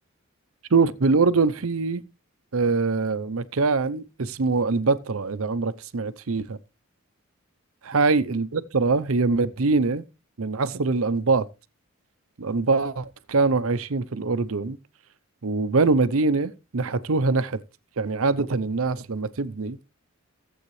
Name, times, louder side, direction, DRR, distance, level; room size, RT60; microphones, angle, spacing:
voice 1, 0.7-2.0 2.5-6.6 7.9-10.0 10.4-11.5 12.4-14.8 15.4-17.6 18.0-19.8, right 4 dB, 75° right, 0.7 m, -23 dB
15.0 x 7.9 x 3.2 m
head